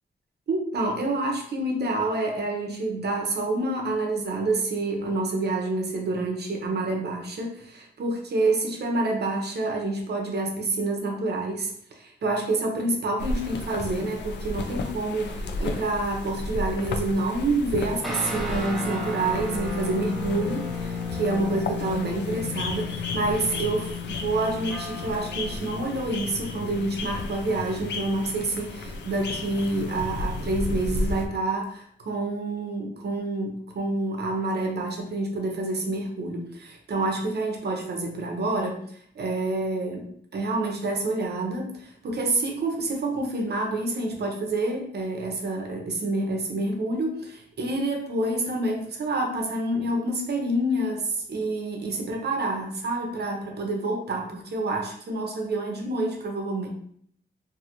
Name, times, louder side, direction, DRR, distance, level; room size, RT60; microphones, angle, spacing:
voice 1, 0.5-38.8 39.2-56.7, right 2 dB, 60° right, 2 dB, 0.7 m, -28 dB
sound 1, 13.2-31.3, left 2 dB, 65° left, 0.4 m, -34 dB
sound 2, 18.0-27.7, left 4 dB, ahead, 0.8 m, -34 dB
2.6 x 2.4 x 2.9 m, 0.63 s
cardioid pair, 60°, 19 cm